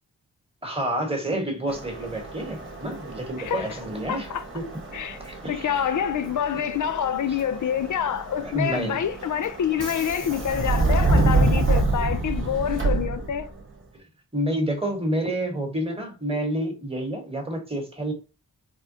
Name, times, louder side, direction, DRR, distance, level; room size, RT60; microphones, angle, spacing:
voice 1, 0.6-4.3 4.5-4.7 5.2-6.0 7.3-7.4 8.4-9.1 13.9-14.0 14.3-18.1, right 1 dB, 15° right, 1.3 m, -29 dB
Subway metro underground, 1.7-13.6, right 2 dB, 30° right, 0.9 m, -27 dB
voice 2, 4.1-4.4 4.9-5.2 5.5-13.5, left 9 dB, 50° left, 0.5 m, -27 dB
3.5 x 2.2 x 2.7 m
cardioid pair, 40°, 39 cm